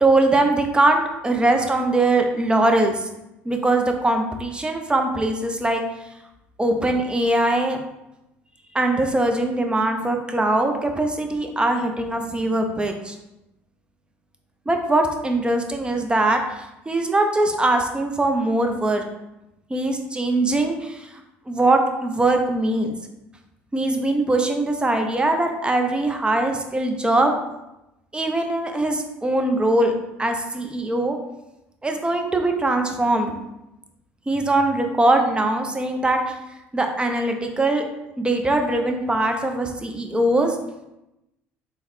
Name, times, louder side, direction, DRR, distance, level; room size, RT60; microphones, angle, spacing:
voice 1, 0.0-3.1 3.4-5.8 6.6-7.8 8.7-13.1 14.7-19.0 19.7-22.9 23.7-27.4 28.1-31.2 31.8-33.3 34.3-36.3 36.7-37.8 38.2-40.6, right 2 dB, 15° right, 4 dB, 0.5 m, -21 dB
3.7 x 2.1 x 3.1 m, 0.91 s
hypercardioid pair, 70°, 6 cm